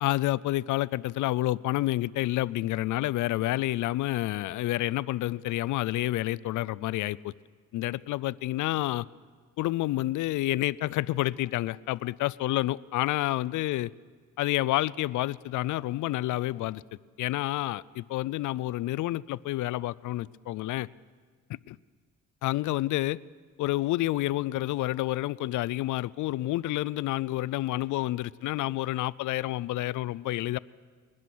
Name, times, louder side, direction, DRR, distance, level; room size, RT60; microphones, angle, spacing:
voice 1, 0.0-7.3 7.7-9.1 9.6-13.9 14.4-16.8 17.2-20.9 22.4-23.2 23.6-30.6, left 16 dB, 80° left, 21 dB, 0.5 m, -29 dB
22.5 x 19.5 x 6.2 m, 1.5 s
cardioid pair, 90°, 30 cm